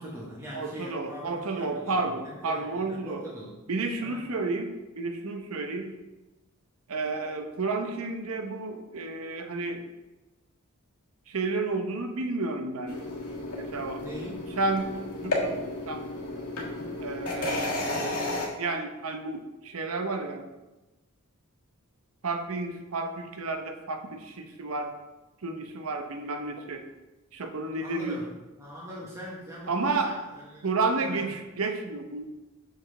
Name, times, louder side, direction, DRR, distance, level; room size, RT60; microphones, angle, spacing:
voice 1, 0.0-1.9 2.2-3.6 4.0-4.2 14.0-14.5 27.8-28.3 28.6-30.7 31.0-31.3, equal, 15° right, -5 dB, 1.0 m, -41 dB
voice 2, 0.5-3.3 3.7-5.9 6.9-9.9 11.3-13.0 13.6-14.0 14.6-14.9 15.2-15.6 15.9-16.1 17.0-18.0 18.6-20.5 22.2-24.9 25.4-26.8 27.3-28.2 29.7-30.1 30.6-32.3, right 3 dB, 75° right, 5 dB, 0.7 m, -31 dB
sound 1, 12.9-18.5, left 2 dB, 85° left, 1.5 m, -32 dB
6.5 x 4.9 x 3.8 m, 1.1 s
head